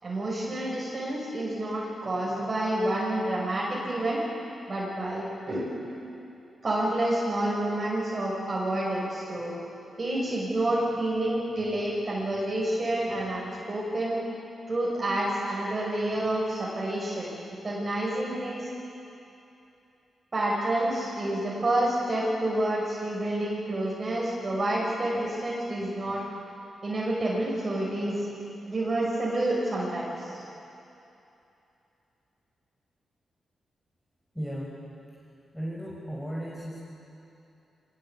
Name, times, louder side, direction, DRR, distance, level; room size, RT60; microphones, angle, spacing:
voice 1, 0.0-4.2 4.7-5.7 6.6-9.5 10.0-14.2 14.7-17.3 17.6-18.7 20.3-26.2 26.8-28.3 28.7-30.4, right 1 dB, 40° right, -4 dB, 5.7 m, -28 dB
voice 2, 34.3-34.7 35.5-36.8, equal, 5° left, -5 dB, 5.3 m, -35 dB
24.5 x 19.0 x 8.3 m, 2.8 s
cardioid pair, 65°, 0 cm